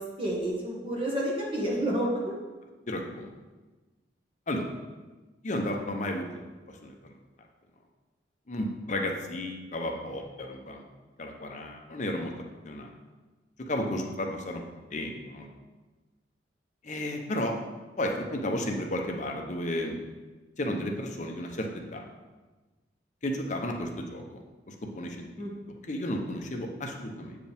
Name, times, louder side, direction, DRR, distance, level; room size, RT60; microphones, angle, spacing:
voice 1, 0.0-2.3 25.4-25.5, right 1 dB, 30° right, -4 dB, 1.4 m, -30 dB
voice 2, 2.9-3.3 4.5-4.7 5.4-6.5 6.8-6.9 8.5-10.8 11.2-12.3 12.6-12.9 13.7-14.6 14.9-15.5 16.8-17.5 18.0-20.0 20.6-22.0 23.2-24.2 24.7-25.4 25.9-27.4, left 1 dB, 40° left, 2 dB, 0.7 m, -33 dB
7.8 x 4.9 x 3.5 m, 1.2 s
head